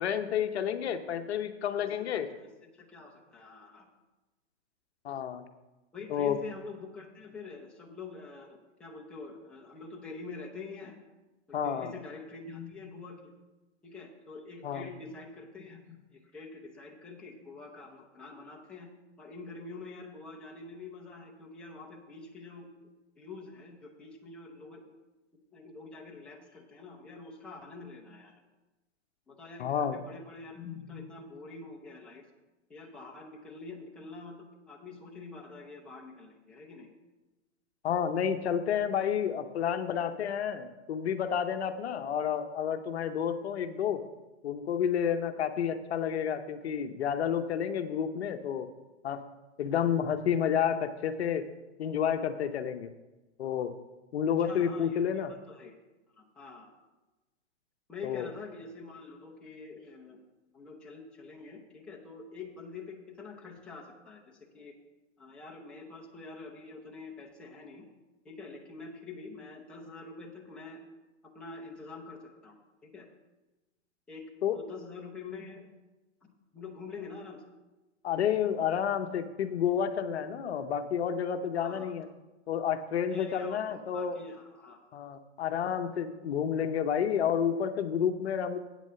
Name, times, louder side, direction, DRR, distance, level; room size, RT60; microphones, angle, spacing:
voice 1, 0.0-2.3 5.0-5.4 6.1-6.4 11.5-11.9 14.6-14.9 29.6-30.0 37.8-44.0 44.4-48.7 49.0-49.2 49.6-51.4 51.8-52.9 53.4-53.7 54.1-55.3 58.0-58.3 74.4-74.6 78.0-82.1 82.5-84.2 84.9-88.6, left 8 dB, 60° left, 8 dB, 0.8 m, -30 dB
voice 2, 1.7-3.9 5.9-11.0 11.5-13.2 13.8-18.9 19.2-22.9 23.2-24.8 25.5-28.3 29.3-32.2 32.7-36.9 54.4-55.7 56.1-56.7 57.9-60.2 60.5-64.7 65.2-67.9 68.2-70.8 71.3-73.1 74.1-74.2 74.5-75.7 76.5-77.4 81.6-81.9 83.1-84.8, left 4 dB, 5° left, -2 dB, 0.4 m, -46 dB
8.6 x 6.0 x 6.8 m, 1.1 s
hypercardioid pair, 150°, 37 cm